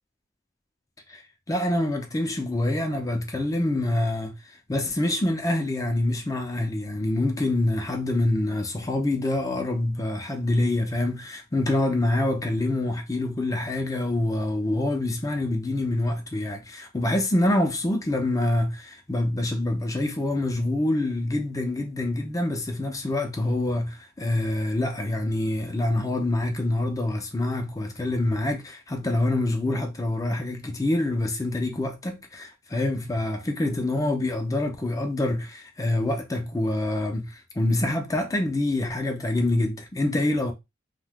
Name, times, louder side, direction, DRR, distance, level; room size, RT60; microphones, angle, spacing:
voice 1, 1.5-40.5, left 1 dB, 20° left, 0.4 m, -26 dB
2.7 x 2.1 x 3.4 m
head